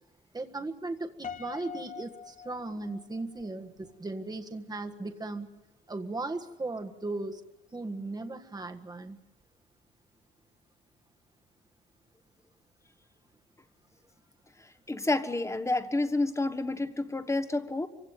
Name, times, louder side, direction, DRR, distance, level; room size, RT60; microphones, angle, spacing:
voice 1, 0.3-5.5 5.9-7.4 7.7-9.2, right 2 dB, 20° right, 5 dB, 1.6 m, -37 dB
Piano, 1.2-3.5, left 7 dB, 40° left, 1.1 m, -43 dB
voice 2, 14.9-17.9, left 2 dB, 15° left, 10 dB, 1.4 m, -29 dB
24.5 x 16.5 x 9.4 m, 1.1 s
cardioid pair, 90°, 20 cm